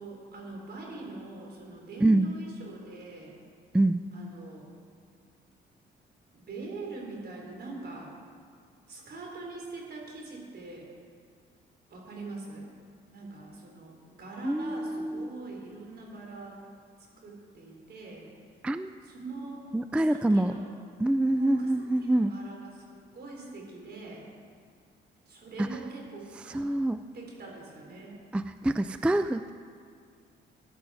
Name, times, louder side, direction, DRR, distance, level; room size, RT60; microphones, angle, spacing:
voice 1, 0.0-3.4 4.1-4.7 6.3-8.1 8.9-10.9 11.9-12.7 13.1-16.6 17.2-18.3 19.0-19.7 20.0-20.7 21.3-24.3 25.3-26.7 27.1-28.2, right 3 dB, 55° right, -1 dB, 3.9 m, -43 dB
voice 2, 2.0-2.3 3.7-4.0 14.4-15.3 18.6-18.9 19.7-20.5 21.0-22.3 25.6-25.7 26.5-27.0 28.3-29.5, right 1 dB, 5° right, 11 dB, 0.3 m, -25 dB
15.5 x 11.0 x 4.9 m, 2.1 s
cardioid pair, 90°, 20 cm